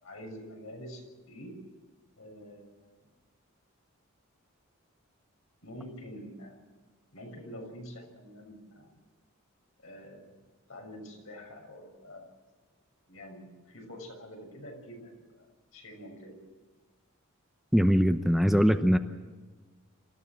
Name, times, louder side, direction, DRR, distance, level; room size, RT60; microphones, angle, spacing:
voice 1, 0.0-1.0 1.3-1.5 2.2-3.1 5.6-6.6 7.1-8.9 9.8-10.4 10.7-12.4 13.1-15.5 15.7-16.5, equal, 75° left, 2 dB, 6.9 m, -46 dB
voice 2, 17.7-19.0, equal, ahead, 7 dB, 0.8 m, -22 dB
27.0 x 14.0 x 7.6 m, 1.4 s
head